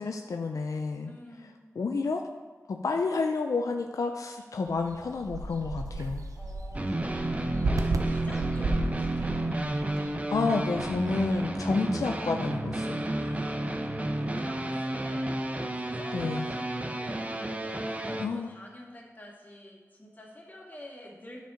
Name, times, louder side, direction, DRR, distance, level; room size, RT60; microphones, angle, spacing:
voice 1, 0.0-1.1 1.8-2.2 2.7-6.2 10.3-13.0 16.1-16.5 18.2-18.5, left 4 dB, 85° left, 4 dB, 0.5 m, -30 dB
voice 2, 1.0-1.6 6.3-9.6 11.5-11.9 13.1-17.3 17.6-21.5, left 1 dB, 30° left, -3 dB, 2.3 m, -48 dB
sound 1, 4.7-11.4, right 2 dB, 90° right, 0.6 m, -34 dB
sound 2, 6.7-18.3, right 1 dB, 25° right, 0.7 m, -31 dB
10.0 x 5.2 x 5.1 m, 1.4 s
wide cardioid pair, 65°, 6 cm